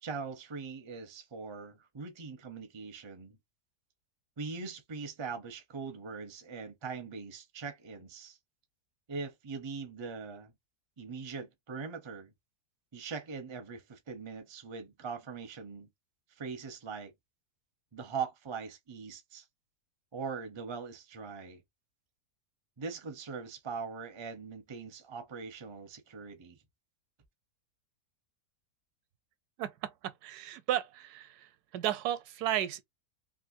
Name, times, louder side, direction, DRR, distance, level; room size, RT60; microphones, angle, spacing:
voice 1, 0.0-3.4 4.4-8.4 9.1-10.5 11.0-12.3 12.9-15.9 16.4-17.1 17.9-19.4 20.1-21.6 22.8-26.6, right 5 dB, 40° right, 0.4 m, -41 dB
voice 2, 29.6-29.9 30.2-31.3 31.7-32.8, right 12 dB, 80° right, 1.1 m, -33 dB
3.3 x 2.6 x 2.6 m
omnidirectional pair, 1.6 m